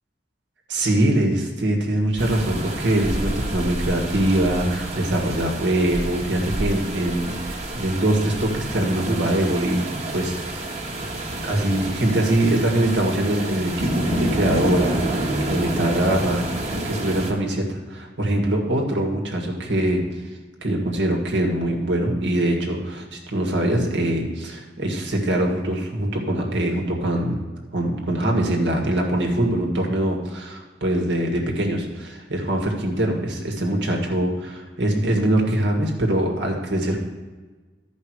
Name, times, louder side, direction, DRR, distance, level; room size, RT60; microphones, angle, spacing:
voice 1, 0.7-9.8 10.1-10.6 11.4-20.0 20.6-27.4 27.7-37.0, right 1 dB, 80° right, 1 dB, 1.8 m, -23 dB
sound 1, 2.2-17.3, right 1 dB, 40° right, 1.4 m, -28 dB
13.0 x 5.4 x 4.8 m, 1.3 s
head